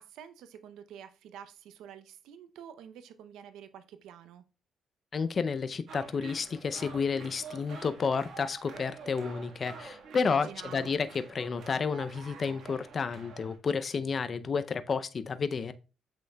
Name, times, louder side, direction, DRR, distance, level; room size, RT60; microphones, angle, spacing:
voice 1, 0.0-4.4 10.2-11.0, right 9 dB, 85° right, 0.6 m, -48 dB
voice 2, 5.1-15.7, left 5 dB, 45° left, 0.5 m, -31 dB
sound 1, 5.9-13.6, right 4 dB, 70° right, 1.5 m, -47 dB
7.8 x 5.9 x 2.3 m
cardioid pair, 90°, 0 cm